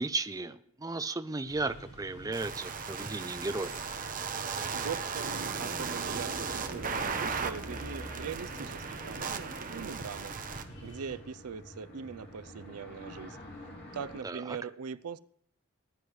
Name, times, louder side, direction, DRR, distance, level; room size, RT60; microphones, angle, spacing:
voice 1, 0.0-3.8 14.2-14.6, right 3 dB, 15° right, 11 dB, 0.5 m, -35 dB
sound 1, 1.5-11.2, right 1 dB, 75° left, 5.3 m, -49 dB
sound 2, 2.3-10.6, right 5 dB, 35° right, 0.9 m, -36 dB
voice 2, 4.7-10.3 10.8-13.4 13.9-15.2, right 6 dB, 85° right, 15 dB, 0.5 m, -41 dB
sound 3, 5.5-14.2, equal, 45° left, 2.7 m, -48 dB
20.0 x 9.7 x 3.2 m, 0.65 s
head